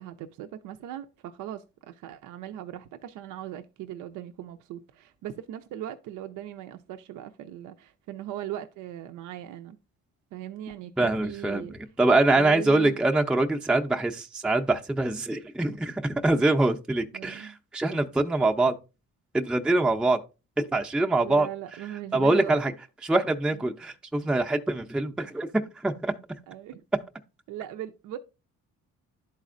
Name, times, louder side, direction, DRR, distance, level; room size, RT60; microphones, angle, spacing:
voice 1, 0.0-9.8 10.3-11.7 12.3-13.1 17.1-17.6 21.2-22.6 23.5-23.7 26.5-26.8 27.5-28.2, right 12 dB, 85° right, 0.5 m, -39 dB
voice 2, 11.0-11.7 12.0-18.8 19.3-20.2 20.6-21.5 22.1-22.7 23.0-26.1, right 2 dB, 5° right, 0.4 m, -24 dB
11.5 x 4.1 x 2.5 m
cardioid pair, 90°, 30 cm